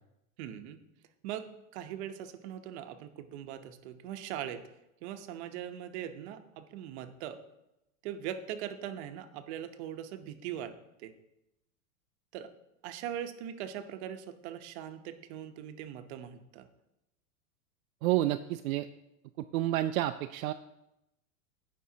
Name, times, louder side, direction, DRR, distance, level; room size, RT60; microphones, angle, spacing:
voice 1, 0.4-0.8 1.2-4.6 5.0-7.4 8.0-10.7 11.0-11.1 12.3-12.5 12.8-16.7, right 10 dB, 50° right, 8 dB, 0.9 m, -41 dB
voice 2, 18.0-18.9 19.4-20.5, right 14 dB, 75° right, 8 dB, 0.5 m, -29 dB
15.5 x 5.4 x 2.8 m, 0.89 s
supercardioid pair, 150°, 43 cm